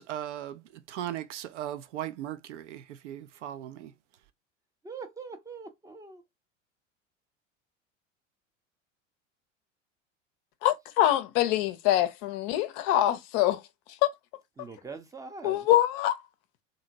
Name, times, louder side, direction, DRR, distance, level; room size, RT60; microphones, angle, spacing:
voice 1, 0.0-3.9, right 12 dB, 65° right, 0.5 m, -38 dB
voice 2, 4.8-6.2 14.6-15.7, right 4 dB, 10° right, 0.5 m, -43 dB
voice 3, 10.6-13.6 14.0-14.1 15.4-16.2, left 13 dB, 45° left, 0.5 m, -24 dB
2.8 x 2.6 x 2.6 m
figure-of-eight pair, 75°, 39 cm